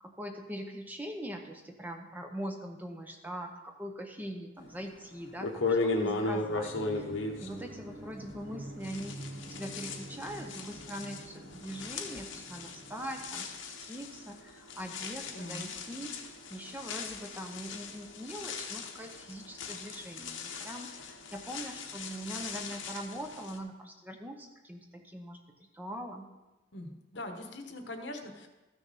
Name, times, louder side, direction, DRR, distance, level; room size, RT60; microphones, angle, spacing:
voice 1, 0.0-7.1 7.4-9.2 9.5-16.1 16.5-25.4 25.7-26.3, equal, 10° right, 3 dB, 0.7 m, -42 dB
sound 1, 4.8-4.9 5.4-8.5 8.8-23.6, left 3 dB, 80° left, 1.0 m, -37 dB
sound 2, 6.4-14.0, right 1 dB, 50° right, 1.0 m, -47 dB
voice 2, 15.3-15.6 26.7-28.5, left 1 dB, 60° left, 6 dB, 1.1 m, -42 dB
14.0 x 6.4 x 4.1 m, 1.1 s
head